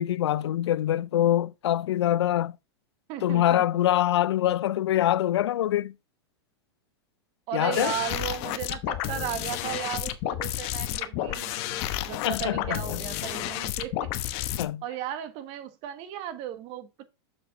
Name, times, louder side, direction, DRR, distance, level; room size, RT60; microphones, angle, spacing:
voice 1, 0.0-2.6 3.2-5.9 7.5-7.9 12.2-13.0 14.6-14.8, left 12 dB, 85° left, 0.4 m, -24 dB
voice 2, 3.1-3.6 7.5-11.6 12.0-14.1 14.8-17.0, right 11 dB, 45° right, 1.5 m, -35 dB
sound 1, 7.7-14.6, left 13 dB, 45° left, 1.1 m, -31 dB
7.1 x 7.1 x 3.8 m
supercardioid pair, 130°, 14 cm